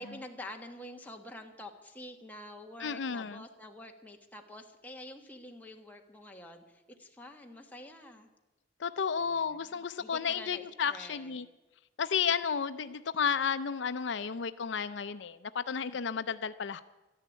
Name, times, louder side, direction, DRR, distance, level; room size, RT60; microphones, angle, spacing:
voice 1, 0.0-8.3 9.2-11.4, left 1 dB, 10° left, 2 dB, 1.4 m, -47 dB
voice 2, 2.8-3.4 8.8-11.5 12.0-16.8, left 6 dB, 70° left, 12 dB, 0.5 m, -32 dB
13.0 x 10.5 x 9.3 m, 1.1 s
head